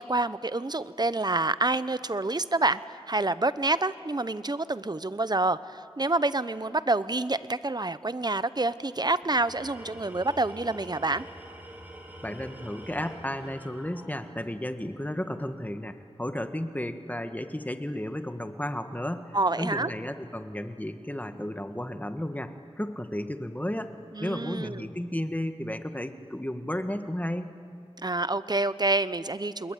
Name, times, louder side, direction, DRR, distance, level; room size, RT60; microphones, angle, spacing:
voice 1, 0.0-2.8 3.1-11.2 19.3-19.9 24.1-24.9 28.0-29.7, right 2 dB, 40° right, 15 dB, 0.9 m, -27 dB
Tools, 9.2-14.6, right 1 dB, 15° right, 4.9 m, -46 dB
voice 2, 12.2-23.9 24.2-27.5, left 1 dB, 15° left, 8 dB, 1.7 m, -33 dB
27.5 x 21.5 x 9.2 m, 2.4 s
wide cardioid pair, 40°, 11 cm